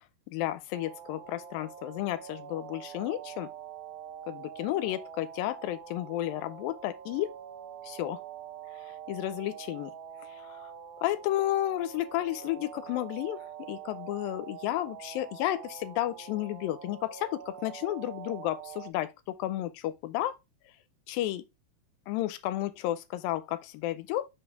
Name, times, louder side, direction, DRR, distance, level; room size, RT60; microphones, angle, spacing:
voice 1, 0.3-3.5 4.3-7.3 7.8-8.2 8.8-9.9 10.3-10.7 11.0-20.3 21.1-21.4 22.1-24.3, left 14 dB, 85° left, 2.3 m, -32 dB
sound 1, 0.7-18.9, right 9 dB, 90° right, 2.5 m, -45 dB
5.7 x 5.3 x 3.4 m
omnidirectional pair, 4.1 m